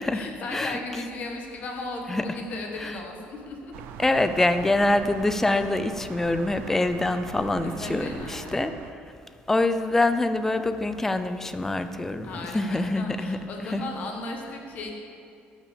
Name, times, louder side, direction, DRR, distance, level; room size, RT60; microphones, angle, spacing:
voice 1, 0.0-3.7 4.6-4.7 7.8-8.6 12.2-14.9, left 2 dB, 45° left, 2 dB, 1.6 m, -36 dB
sound 1, 3.7-8.9, right 9 dB, 80° right, 0.6 m, -42 dB
voice 2, 4.0-8.7 9.5-13.4 13.7-13.8, left 2 dB, 10° left, 10 dB, 0.5 m, -25 dB
12.5 x 6.0 x 6.8 m, 2.4 s
cardioid pair, 155°, 4 cm